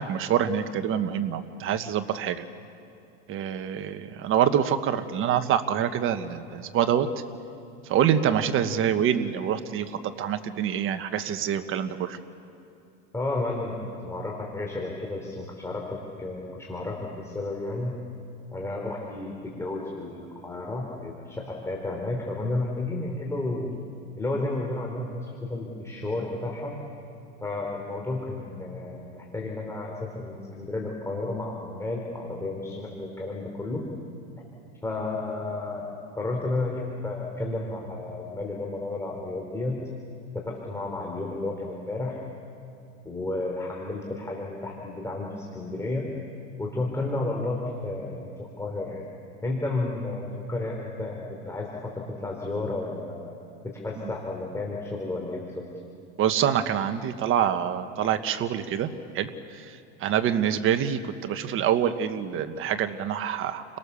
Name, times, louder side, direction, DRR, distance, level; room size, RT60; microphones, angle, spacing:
voice 1, 0.0-2.4 3.3-7.1 7.9-9.9 10.2-12.2 56.2-59.3 59.6-59.7 60.0-63.6, right 9 dB, 40° right, 9 dB, 1.4 m, -26 dB
voice 2, 13.1-17.9 18.5-23.8 24.2-26.7 27.4-33.8 34.8-39.8 40.3-42.2 43.0-46.1 46.6-49.0 49.4-53.3 53.6-55.6, left 2 dB, 10° left, -1 dB, 4.0 m, -32 dB
30.0 x 23.5 x 7.1 m, 2.8 s
supercardioid pair, 120°, 33 cm